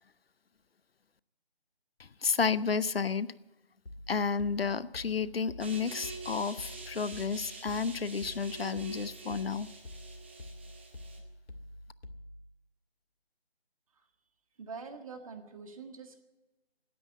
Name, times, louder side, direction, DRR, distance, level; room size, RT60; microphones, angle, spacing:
voice 1, 2.0-3.3 4.1-9.7, left 5 dB, 65° left, 18 dB, 0.7 m, -31 dB
sound 1, 3.9-12.5, left 1 dB, 85° left, 1.9 m, -48 dB
sound 2, 5.6-11.2, right 4 dB, 10° right, 0.7 m, -46 dB
voice 2, 14.6-16.2, right 5 dB, 35° right, 6 dB, 1.7 m, -45 dB
17.5 x 9.6 x 8.1 m, 1.1 s
figure-of-eight pair, 160°, 32 cm